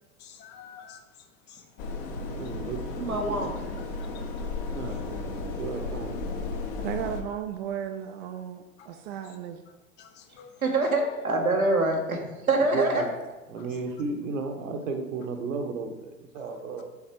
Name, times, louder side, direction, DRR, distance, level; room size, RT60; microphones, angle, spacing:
voice 1, 0.2-2.5 3.9-5.0 8.8-9.1 9.7-10.6 13.6-13.7 16.4-16.6, left 7 dB, 25° left, 6 dB, 0.5 m, -52 dB
sound 1, 1.8-7.2, left 3 dB, 40° left, 0.9 m, -34 dB
voice 2, 2.1-3.5 4.7-6.5 12.7-13.1 13.5-16.9, right 4 dB, 65° right, 4 dB, 1.2 m, -34 dB
voice 3, 3.0-3.6 10.6-13.0, right 2 dB, 85° right, 0 dB, 1.3 m, -25 dB
voice 4, 6.8-9.6, right 9 dB, 45° right, 6 dB, 0.6 m, -35 dB
7.2 x 4.1 x 4.7 m, 1.1 s
figure-of-eight pair, 85°, 42 cm